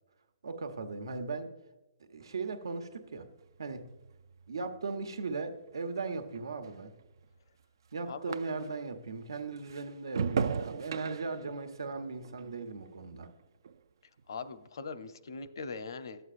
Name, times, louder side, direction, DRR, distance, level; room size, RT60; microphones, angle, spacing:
voice 1, 0.4-1.5 2.1-3.3 3.6-3.9 4.5-6.9 7.9-13.3, right 4 dB, 85° right, 7 dB, 1.0 m, -38 dB
sound 1, 2.2-9.0 9.3-13.9 14.2-14.7, right 6 dB, 65° right, 0.3 m, -40 dB
voice 2, 14.3-16.2, left 4 dB, 70° left, 11 dB, 0.7 m, -41 dB
12.0 x 8.1 x 2.5 m, 1.1 s
hypercardioid pair, 160°, 2 cm